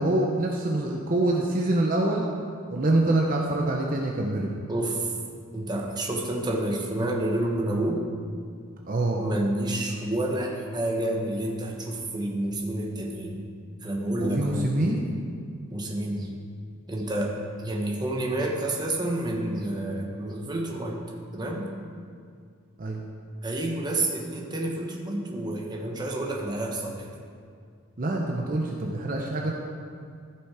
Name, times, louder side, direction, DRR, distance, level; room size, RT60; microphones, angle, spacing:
voice 1, 0.0-2.2 2.7-4.5 8.9-9.2 14.2-15.1 22.8-23.0 28.0-29.5, right 1 dB, 40° right, -1 dB, 0.8 m, -25 dB
voice 2, 4.7-5.1 5.5-8.0 9.2-13.4 13.8-14.7 15.7-16.3 16.9-21.0 21.3-21.7 23.4-27.1, right 1 dB, 20° right, 0 dB, 1.1 m, -29 dB
14.0 x 5.9 x 4.9 m, 2.2 s
head